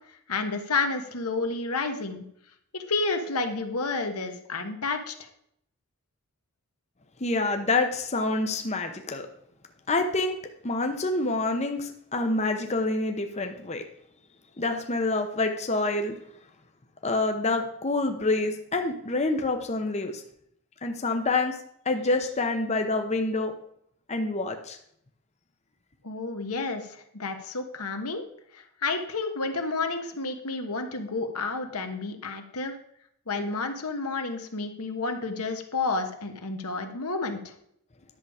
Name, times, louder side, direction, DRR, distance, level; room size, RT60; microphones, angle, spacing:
voice 1, 0.3-2.2 2.7-5.1 26.0-28.3 28.5-32.8 33.3-37.4, left 3 dB, 80° left, 6 dB, 1.4 m, -30 dB
voice 2, 7.2-9.3 9.9-13.8 14.6-16.1 17.0-20.2 20.8-21.6 21.8-23.5 24.1-24.8, left 2 dB, 30° left, 5 dB, 0.8 m, -27 dB
11.0 x 7.1 x 4.9 m, 0.71 s
head